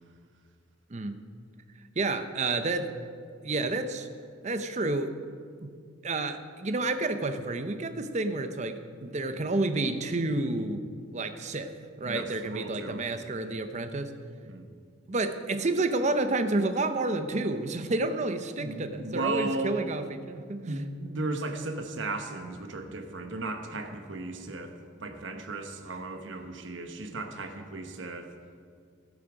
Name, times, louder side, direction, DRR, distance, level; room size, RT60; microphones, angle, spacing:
voice 1, 2.0-2.9 3.4-4.1 4.4-5.1 5.6-5.7 6.0-10.8 11.1-11.7 12.0-14.2 15.1-20.7, right 2 dB, 35° right, 8 dB, 0.6 m, -30 dB
voice 2, 12.0-13.0 14.5-14.7 18.6-19.9 20.6-28.3, right 2 dB, 65° right, 5 dB, 1.1 m, -35 dB
15.5 x 8.4 x 5.1 m, 2.2 s
head